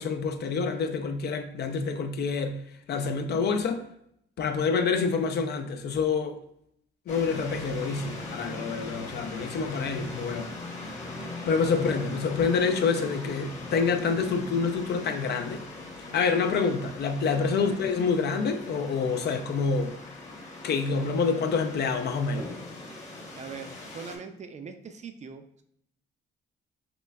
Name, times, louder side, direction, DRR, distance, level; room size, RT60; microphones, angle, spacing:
voice 1, 0.0-2.6 2.9-3.8 4.4-6.4 7.1-10.5 11.5-15.6 16.0-20.0 20.6-22.5, left 5 dB, 55° left, 0.4 m, -27 dB
sound 1, 7.1-24.2, left 2 dB, 35° left, 1.0 m, -40 dB
voice 2, 23.4-25.6, right 5 dB, 35° right, 0.4 m, -42 dB
5.8 x 2.1 x 2.3 m
cardioid pair, 90°, 20 cm